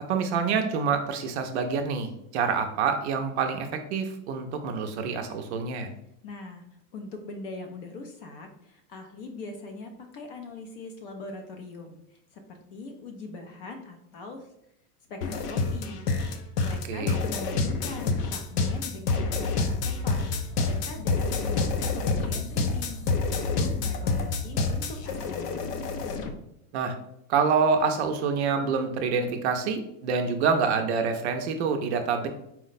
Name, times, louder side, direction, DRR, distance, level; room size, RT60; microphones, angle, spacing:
voice 1, 0.1-5.9 16.9-17.2 26.7-26.9 27.3-32.3, right 5 dB, 50° right, 6 dB, 0.4 m, -26 dB
voice 2, 6.2-6.6 6.9-12.0 12.3-14.5 15.1-16.0 16.6-23.0 23.3-25.7, left 3 dB, 40° left, 4 dB, 0.4 m, -41 dB
sound 1, 15.2-26.3, left 4 dB, 85° left, 0.7 m, -28 dB
4.2 x 2.1 x 3.9 m, 0.78 s
supercardioid pair, 160°, 46 cm